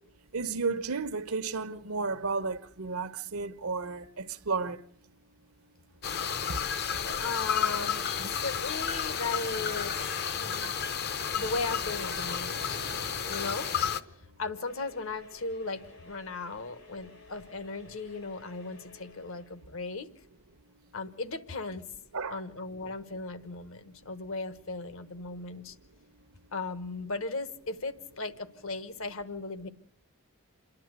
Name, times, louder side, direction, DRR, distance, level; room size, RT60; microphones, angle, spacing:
voice 1, 0.3-4.8 6.5-6.6 6.9-7.0 8.2-8.3 22.1-22.4, right 4 dB, 80° right, 1.0 m, -33 dB
sound 1, 6.0-14.0, left 7 dB, 45° left, 0.7 m, -32 dB
voice 2, 7.2-10.0 10.4-10.8 11.3-12.8 13.3-13.7 14.4-20.1 20.9-21.8 22.3-25.8 26.5-29.7, left 3 dB, 65° left, 1.3 m, -37 dB
Brass instrument, 11.4-14.5, right 3 dB, 60° right, 0.7 m, -48 dB
sound 2, 14.6-19.7, left 3 dB, 85° left, 4.8 m, -54 dB
28.0 x 11.5 x 8.0 m
head